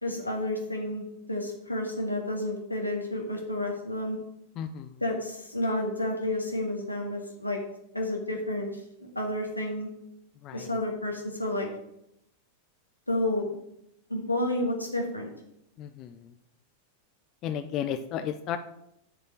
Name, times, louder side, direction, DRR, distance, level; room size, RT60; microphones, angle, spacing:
voice 1, 0.0-4.2 5.0-7.6 7.9-8.7 9.0-9.9 10.5-11.7 13.1-13.5 14.1-15.3, left 1 dB, 85° left, 0 dB, 2.1 m, -30 dB
voice 2, 4.6-5.0 10.4-10.7 15.8-16.3 17.4-18.6, left 9 dB, 35° left, 9 dB, 0.5 m, -34 dB
7.8 x 5.4 x 7.4 m, 0.80 s
figure-of-eight pair, 90°, 0 cm